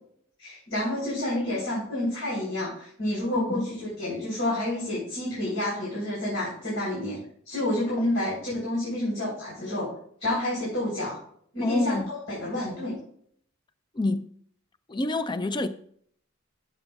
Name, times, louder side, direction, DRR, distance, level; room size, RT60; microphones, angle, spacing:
voice 1, 0.4-7.2 7.5-9.9 10.2-11.2 11.5-12.9, left 1 dB, 65° left, 3.8 m, -29 dB
voice 2, 11.6-12.1 14.0-14.3 14.9-15.7, left 2 dB, 20° left, 0.4 m, -27 dB
13.0 x 8.0 x 2.4 m
head